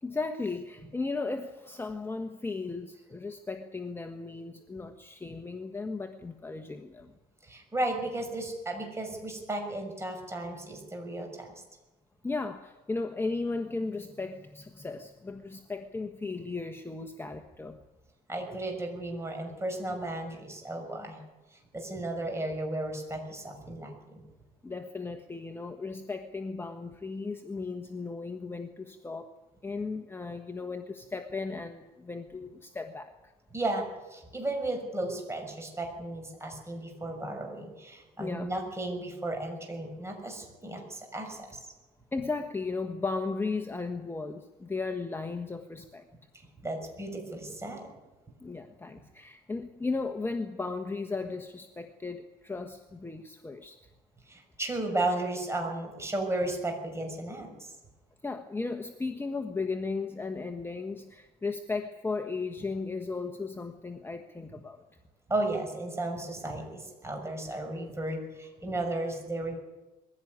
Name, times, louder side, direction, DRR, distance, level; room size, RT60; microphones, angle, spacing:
voice 1, 0.0-7.1 12.2-17.8 24.6-29.3 29.6-33.3 38.2-38.5 42.1-46.0 48.4-53.8 58.2-64.8, left 3 dB, 15° left, 6 dB, 1.3 m, -36 dB
voice 2, 7.4-11.5 18.3-21.2 21.7-24.2 33.5-41.6 46.3-47.9 54.3-57.7 65.3-69.6, right 2 dB, 15° right, 3 dB, 6.3 m, -34 dB
21.5 x 16.0 x 9.7 m, 1.1 s
cardioid pair, 110°, 17 cm